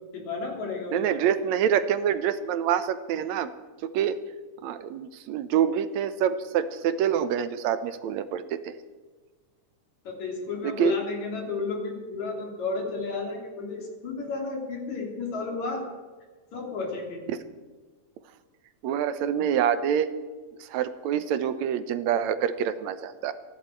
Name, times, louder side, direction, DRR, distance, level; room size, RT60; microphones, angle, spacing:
voice 1, 0.1-1.1 10.0-15.9 16.5-17.2, left 4 dB, 60° left, 1 dB, 4.3 m, -32 dB
voice 2, 0.9-3.5 3.8-4.2 4.6-8.7 10.6-10.9 18.8-20.1 20.6-23.3, right 9 dB, 70° right, 12 dB, 2.0 m, -26 dB
28.5 x 11.5 x 4.5 m, 1.4 s
omnidirectional pair, 3.6 m